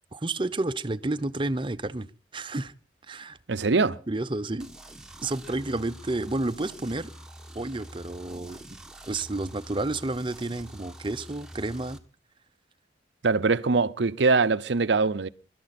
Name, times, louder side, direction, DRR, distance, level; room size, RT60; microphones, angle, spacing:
voice 1, 0.1-2.1 2.3-2.7 3.1-3.4 4.1-4.7 5.2-7.1 7.5-8.6 9.1-12.0, right 2 dB, 25° right, 0.7 m, -30 dB
voice 2, 3.5-4.0 13.2-15.3, right 4 dB, 70° right, 0.7 m, -23 dB
sound 1, 4.6-12.0, right 1 dB, 5° right, 1.3 m, -46 dB
24.0 x 12.5 x 4.2 m
head